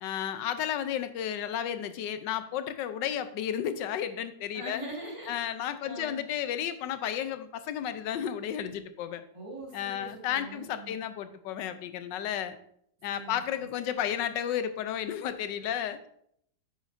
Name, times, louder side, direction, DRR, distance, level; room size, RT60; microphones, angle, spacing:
voice 1, 0.0-4.8 5.3-9.2 9.7-12.6 13.0-16.0, left 10 dB, 85° left, 11 dB, 1.3 m, -33 dB
voice 2, 4.5-6.3 9.3-11.0 13.1-13.7, right 1 dB, 20° right, -3 dB, 1.8 m, -43 dB
9.3 x 8.2 x 2.6 m, 0.69 s
omnidirectional pair, 1.9 m